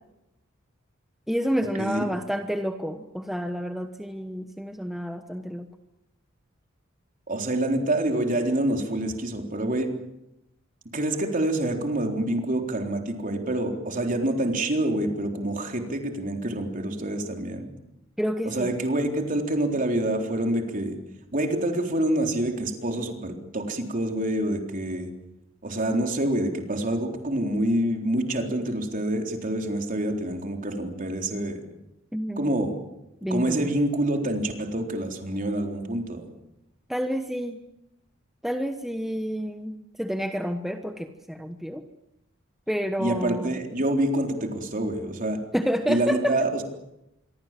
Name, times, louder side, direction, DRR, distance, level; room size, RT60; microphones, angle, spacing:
voice 1, 1.3-5.7 18.2-18.7 32.1-32.5 33.2-33.7 36.9-37.6 38.4-41.8 42.7-43.6 45.5-46.3, equal, ahead, 6 dB, 1.2 m, -29 dB
voice 2, 7.3-9.9 10.9-17.7 18.4-21.0 21.3-25.1 25.6-31.6 32.4-32.8 33.3-36.3 43.0-45.4 45.9-46.6, right 1 dB, 40° right, 3 dB, 3.8 m, -27 dB
27.0 x 23.5 x 7.6 m, 0.87 s
head